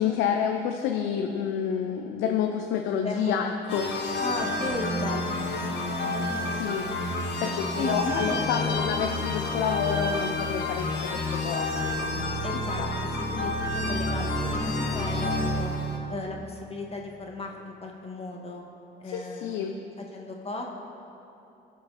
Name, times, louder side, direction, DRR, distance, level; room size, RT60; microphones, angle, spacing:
voice 1, 0.0-4.2 6.5-6.9 7.4-11.8 12.8-12.9 19.0-19.8, left 8 dB, 85° left, 3 dB, 0.7 m, -29 dB
voice 2, 3.0-3.3 4.2-7.2 7.8-8.5 12.4-15.7 16.1-18.6 19.0-19.9 20.1-20.6, left 2 dB, 30° left, 0 dB, 1.8 m, -36 dB
sound 1, 3.7-16.0, left 2 dB, 60° left, 2.6 m, -29 dB
18.5 x 6.4 x 4.2 m, 2.9 s
supercardioid pair, 70°, 20 cm